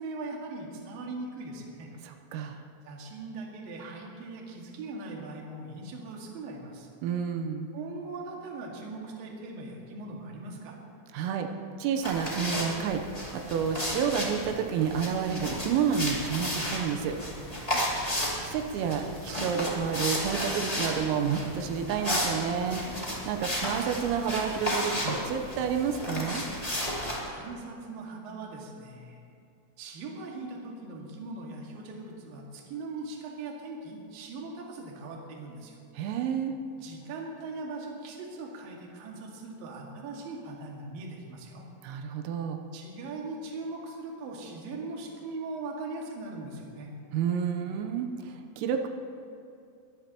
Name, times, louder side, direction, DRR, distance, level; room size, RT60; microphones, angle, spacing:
voice 1, 0.0-1.9 2.8-6.9 7.7-10.8 17.8-18.0 27.2-29.2 29.8-35.8 36.8-41.7 42.7-46.9, right 3 dB, 55° right, -2 dB, 3.1 m, -40 dB
voice 2, 2.0-2.6 7.0-7.7 11.1-11.5 11.8-13.0 13.3-17.2 18.4-26.4 36.0-36.6 41.8-42.6 47.1-48.9, right 7 dB, 90° right, 4 dB, 3.6 m, -30 dB
sound 1, 12.0-27.2, equal, 50° left, 0.4 m, -33 dB
22.5 x 16.5 x 3.0 m, 2.5 s
omnidirectional pair, 5.9 m